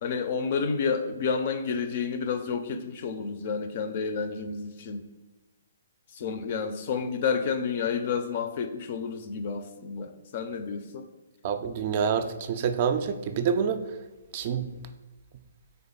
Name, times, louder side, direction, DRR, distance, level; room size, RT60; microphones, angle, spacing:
voice 1, 0.0-5.0 6.1-11.1, left 5 dB, 45° left, 8 dB, 0.4 m, -30 dB
voice 2, 11.4-13.8 14.3-14.7, right 7 dB, 40° right, 9 dB, 0.3 m, -27 dB
3.5 x 3.4 x 3.8 m, 1.1 s
figure-of-eight pair, 130°, 0 cm